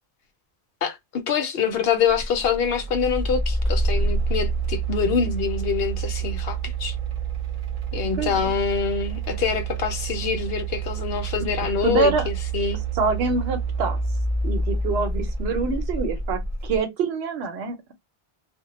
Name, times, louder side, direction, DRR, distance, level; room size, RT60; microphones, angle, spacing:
voice 1, 0.8-7.0 7.9-12.8, left 7 dB, 70° left, 0.8 m, -25 dB
sound 1, 2.1-16.8, right 3 dB, 45° right, 0.7 m, -28 dB
voice 2, 8.0-8.5 11.8-12.3 13.0-14.0 14.4-17.8, right 4 dB, 85° right, 0.9 m, -25 dB
2.2 x 2.1 x 2.8 m
omnidirectional pair, 1.1 m